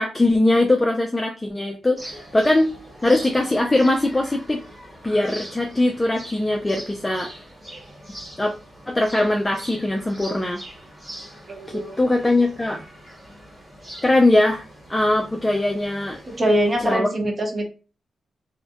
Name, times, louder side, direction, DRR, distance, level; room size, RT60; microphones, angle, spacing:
voice 1, 0.0-2.7 3.0-4.6 5.0-7.3 8.4-8.5 8.9-10.6 11.7-12.8 14.0-14.6 14.9-16.2 16.8-17.1, left 2 dB, 20° left, 2 dB, 0.3 m, -21 dB
sound 1, 2.0-16.9, equal, 15° right, 1.3 m, -42 dB
voice 2, 11.5-12.0 16.3-17.7, equal, 40° right, 2 dB, 0.8 m, -23 dB
2.4 x 2.1 x 2.5 m, 0.35 s
cardioid pair, 75°, 0 cm